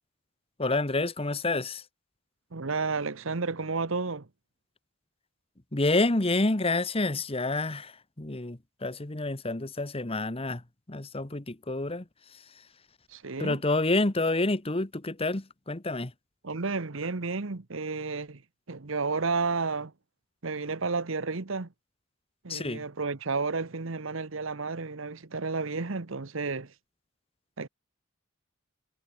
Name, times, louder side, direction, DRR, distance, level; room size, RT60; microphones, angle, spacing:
voice 1, 0.6-1.8 5.7-10.6 10.9-12.0 12.3-12.4 13.4-16.1 22.5-22.8, left 2 dB, 30° left, 1.3 m, -28 dB
voice 2, 2.5-4.3 13.1-13.6 16.4-18.4 18.7-19.9 20.4-21.7 22.4-26.7 27.6-27.7, right 4 dB, 70° right, 1.1 m, -31 dB
head